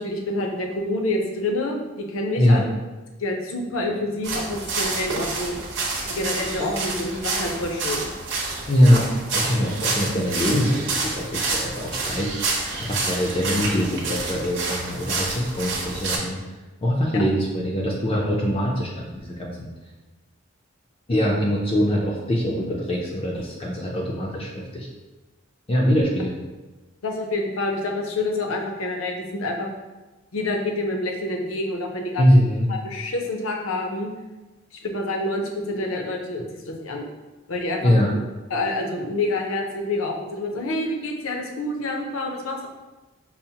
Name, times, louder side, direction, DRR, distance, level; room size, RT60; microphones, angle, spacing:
voice 1, 0.0-2.7 3.2-5.6 6.1-8.1 17.1-17.2 27.0-29.7 30.3-32.4 32.7-34.1 34.8-37.1 37.5-37.9 38.5-42.7, left 2 dB, 80° left, 2 dB, 0.6 m, -27 dB
sound 1, 4.2-16.2, right 3 dB, 60° right, 0.8 m, -28 dB
voice 2, 8.7-12.5 12.8-16.4 16.8-19.7 21.1-24.9 25.7-26.3 32.2-32.7 37.8-38.1, equal, 25° left, -3 dB, 0.4 m, -22 dB
5.5 x 2.0 x 2.8 m, 1.1 s
head